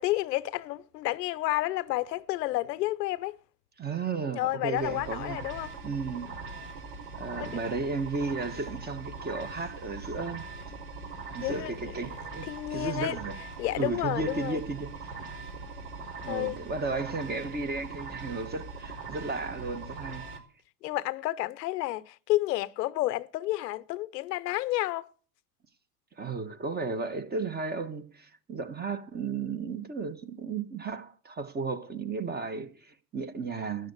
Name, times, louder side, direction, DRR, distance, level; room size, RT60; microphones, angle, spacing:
voice 1, 0.0-3.3 4.4-5.7 7.3-7.5 11.4-11.7 12.5-13.2 13.6-14.6 16.3-16.6 20.8-25.1, left 17 dB, 85° left, 0.9 m, -30 dB
voice 2, 3.8-5.4 5.8-6.3 7.1-10.5 11.3-13.4 13.7-15.1 16.2-20.2 26.2-33.9, right 4 dB, 20° right, 1.5 m, -34 dB
sound 1, 4.8-20.4, right 4 dB, 65° right, 4.8 m, -41 dB
13.0 x 9.3 x 8.2 m
supercardioid pair, 110°, 47 cm